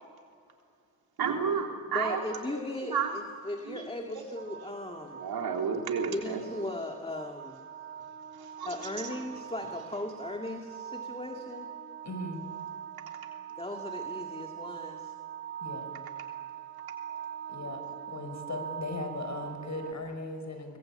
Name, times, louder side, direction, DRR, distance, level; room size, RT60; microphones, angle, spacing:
voice 1, 1.2-2.6 2.9-3.1 3.7-3.8 5.2-6.4 8.6-8.7, right 6 dB, 75° right, 2 dB, 3.5 m, -31 dB
voice 2, 1.9-5.2 6.1-7.6 8.6-11.7 13.6-15.1, left 1 dB, 15° left, 3 dB, 2.0 m, -38 dB
sound 1, 4.3-19.9, right 9 dB, 30° right, 2.1 m, -42 dB
voice 3, 12.0-12.4 15.6-16.0 17.5-20.8, left 2 dB, 50° left, 5 dB, 5.9 m, -38 dB
24.0 x 21.0 x 8.8 m, 2.4 s
cardioid pair, 80°, 37 cm